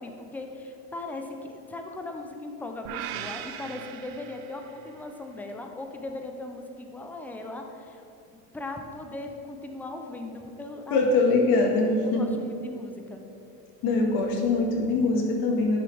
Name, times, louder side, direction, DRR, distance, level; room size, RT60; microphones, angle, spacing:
voice 1, 0.0-8.0 8.5-11.0 12.0-13.2, left 2 dB, 5° left, 4 dB, 0.4 m, -38 dB
sound 1, 2.8-5.1, right 10 dB, 50° right, 0.6 m, -39 dB
voice 2, 10.9-12.2 13.8-15.8, left 3 dB, 50° left, 0 dB, 1.8 m, -23 dB
10.5 x 6.7 x 3.4 m, 2.8 s
supercardioid pair, 125°, 46 cm